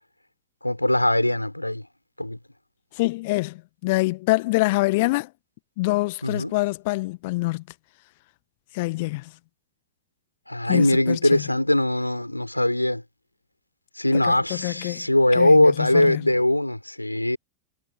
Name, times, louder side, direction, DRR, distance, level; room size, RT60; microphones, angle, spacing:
voice 1, 0.6-1.8 2.2-2.4 6.2-6.5 10.5-13.0 14.0-17.4, left 1 dB, 85° left, 4.3 m, -21 dB
voice 2, 2.9-5.3 5.8-7.6 8.7-9.3 10.7-11.4 14.1-16.3, left 22 dB, 50° left, 1.4 m, -25 dB
figure-of-eight pair, 90°, 0 cm